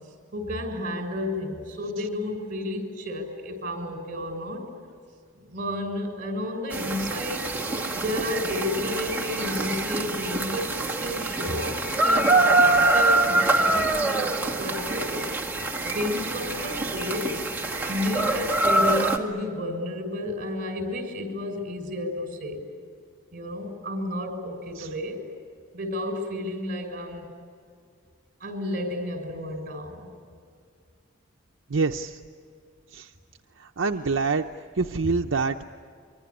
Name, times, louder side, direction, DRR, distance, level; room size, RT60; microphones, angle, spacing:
voice 1, 0.3-4.7 5.3-7.5 7.9-15.2 15.8-17.3 17.9-22.6 23.3-25.2 25.7-27.3 28.4-30.2 35.0-35.1, left 1 dB, 45° right, 4 dB, 6.5 m, -32 dB
sound 1, 6.7-19.2, right 2 dB, 10° right, 2.1 m, -25 dB
voice 2, 31.7-32.2 32.9-33.1 33.6-34.4 34.8-35.6, right 4 dB, 75° right, 4 dB, 0.7 m, -26 dB
24.5 x 24.5 x 9.9 m, 2.2 s
head